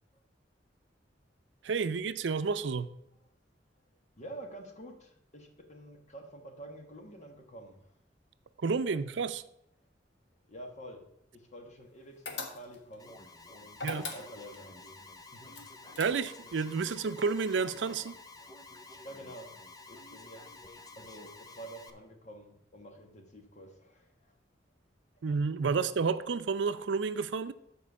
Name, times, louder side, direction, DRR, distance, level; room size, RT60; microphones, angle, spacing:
voice 1, 1.6-2.9 8.6-9.4 13.8-14.1 16.0-18.1 25.2-27.5, right 5 dB, 85° right, 0.5 m, -30 dB
voice 2, 4.2-7.9 10.5-11.0 11.3-13.2 13.5-15.0 15.3-15.6 19.0-19.6 19.9-20.6 21.0-24.4 25.2-25.3, right 1 dB, 40° left, 1.4 m, -48 dB
sound 1, 12.3-12.9 13.7-14.6 15.5-16.5, left 3 dB, 75° left, 1.3 m, -40 dB
Alarm, 13.0-21.9, left 3 dB, 20° left, 0.6 m, -51 dB
7.5 x 4.5 x 6.8 m
head